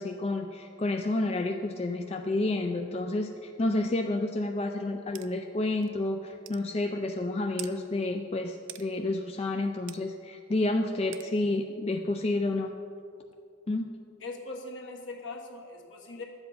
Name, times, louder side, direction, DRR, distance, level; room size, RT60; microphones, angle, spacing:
voice 1, 0.0-12.7 13.7-14.0, left 2 dB, 30° left, 4 dB, 0.4 m, -30 dB
sound 1, 5.2-5.3 5.8-5.9 6.5-6.6 7.6-7.7 8.7-8.9 9.9-10.0 11.1-11.3, right 13 dB, 65° right, 0.5 m, -42 dB
voice 2, 14.2-16.2, left 3 dB, 60° left, 1 dB, 1.5 m, -40 dB
12.0 x 8.0 x 5.5 m, 2.6 s
head